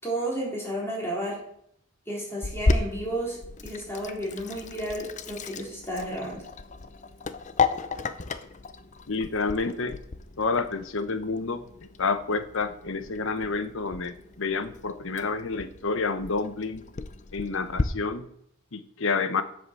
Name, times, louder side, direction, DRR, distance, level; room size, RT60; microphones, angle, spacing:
voice 1, 0.0-1.4 2.1-3.4 3.6-6.4, right 1 dB, 10° left, -4 dB, 4.2 m, -32 dB
Sink (filling or washing), 2.4-17.8, left 3 dB, 35° left, 0.6 m, -34 dB
voice 2, 9.1-10.0 10.4-11.6 12.0-16.8 17.3-18.2 18.7-19.4, left 4 dB, 65° left, 11 dB, 0.9 m, -29 dB
7.9 x 7.9 x 6.9 m, 0.70 s
head